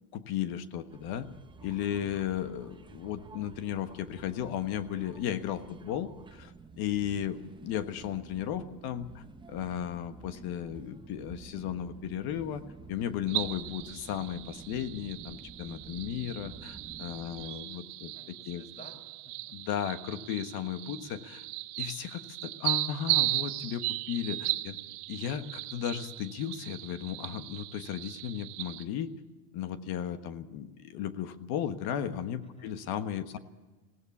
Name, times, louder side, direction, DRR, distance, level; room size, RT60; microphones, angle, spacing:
voice 1, 0.1-1.3 1.6-12.6 12.9-18.6 19.5-21.5 21.8-24.8 25.1-29.1 29.5-33.4, left 10 dB, 50° left, 10 dB, 1.4 m, -35 dB
sound 1, 0.9-17.5, right 4 dB, 10° right, 0.7 m, -50 dB
voice 2, 6.9-7.4 17.1-19.6 32.4-32.8, left 1 dB, 15° left, 4 dB, 6.3 m, -56 dB
sound 2, 13.3-28.8, right 20 dB, 70° right, 1.8 m, -36 dB
19.5 x 17.0 x 8.5 m, 1.2 s
supercardioid pair, 120°, 47 cm